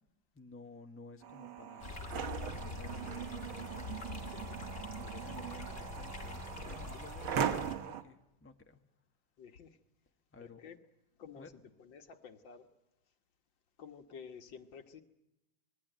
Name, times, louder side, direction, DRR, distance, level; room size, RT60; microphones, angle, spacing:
voice 1, 0.3-2.1 2.5-4.5 5.0-8.8 10.3-10.7 11.4-11.5, left 3 dB, 5° left, 4 dB, 1.3 m, -54 dB
sound 1, 1.2-8.0, right 8 dB, 85° right, 2.0 m, -40 dB
sound 2, 1.8-7.7, left 4 dB, 35° left, 2.3 m, -44 dB
voice 2, 9.4-9.8 10.4-10.8 11.2-11.5 11.8-12.7 13.8-15.0, left 6 dB, 65° left, 6 dB, 2.0 m, -51 dB
26.5 x 21.0 x 9.2 m, 0.92 s
omnidirectional pair, 2.2 m